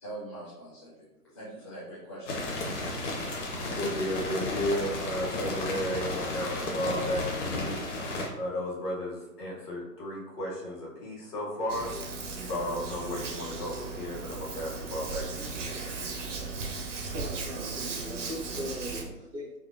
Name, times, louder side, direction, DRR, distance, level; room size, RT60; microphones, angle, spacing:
voice 1, 0.0-2.5, right 1 dB, 20° left, -11 dB, 0.5 m, -43 dB
sound 1, 2.3-8.3, left 2 dB, 50° left, 0.7 m, -33 dB
voice 2, 3.4-7.8 8.4-11.9 12.4-15.8, left 1 dB, 75° left, -4 dB, 1.4 m, -34 dB
Hands, 11.7-19.0, right 4 dB, 50° right, 0.6 m, -37 dB
voice 3, 17.0-19.6, equal, 75° right, -2 dB, 1.2 m, -39 dB
3.7 x 2.1 x 2.4 m, 0.95 s
figure-of-eight pair, 135°, 48 cm